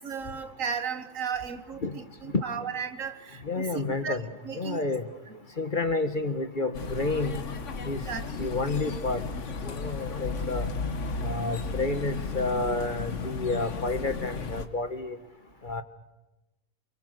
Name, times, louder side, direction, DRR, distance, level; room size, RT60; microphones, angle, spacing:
voice 1, 0.0-4.2 4.4-4.8 5.3-5.4 8.0-8.3, right 6 dB, 55° right, 1.8 m, -35 dB
voice 2, 3.4-4.3 4.5-5.0 5.6-7.4 7.9-8.0 8.4-9.2 9.6-10.7 11.2-15.2 15.6-15.8, left 3 dB, 35° left, 1.3 m, -30 dB
sound 1, 6.7-14.7, left 4 dB, 50° left, 1.6 m, -34 dB
28.5 x 22.5 x 6.6 m
omnidirectional pair, 1.6 m